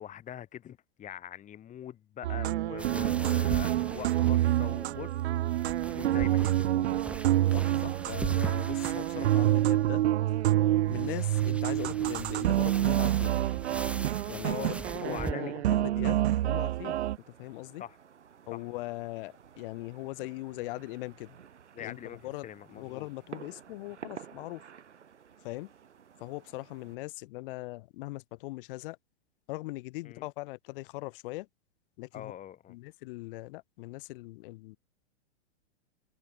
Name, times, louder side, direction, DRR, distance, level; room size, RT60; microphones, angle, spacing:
voice 1, 0.0-5.2 5.9-6.9 14.4-14.7 15.0-15.5 17.8-18.0 18.5-18.6 21.7-23.1 30.0-30.3 32.1-32.8, left 10 dB, 20° left, 1.5 m, -43 dB
sound 1, 2.2-17.2, right 14 dB, 70° right, 0.9 m, -27 dB
sound 2, 2.8-15.3, right 1 dB, 5° right, 1.5 m, -42 dB
voice 2, 7.5-10.0 10.9-13.4 14.3-17.0 17.4-17.8 18.5-21.3 21.8-24.6 25.4-25.7 26.2-29.0 29.5-31.5 32.0-32.3 32.7-34.8, left 21 dB, 50° left, 1.6 m, -40 dB
sound 3, 16.1-27.0, right 7 dB, 85° right, 5.7 m, -52 dB
hypercardioid pair, 120°, 34 cm